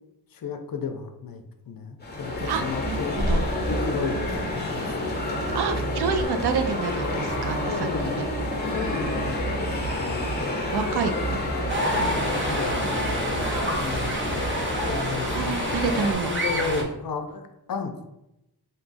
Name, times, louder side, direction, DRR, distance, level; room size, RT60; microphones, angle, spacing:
voice 1, 0.3-3.2 3.7-5.2 7.6-8.2 8.6-10.6 11.2-15.8 16.2-17.9, left 4 dB, 60° left, 6 dB, 0.5 m, -34 dB
sound 1, 2.0-16.1, left 1 dB, 25° left, 0.8 m, -29 dB
voice 2, 2.5-3.0 3.3-3.4 5.5-7.9 8.2-8.3 8.9-9.0 10.4-11.4 12.0-12.1 15.3-16.3, right 5 dB, 75° right, 7 dB, 0.5 m, -28 dB
sound 2, 2.7-14.6, right 2 dB, 50° right, 1.1 m, -38 dB
sound 3, 11.7-16.8, right 1 dB, 30° right, 0.6 m, -29 dB
3.9 x 2.3 x 3.9 m, 0.88 s
wide cardioid pair, 130°, 40 cm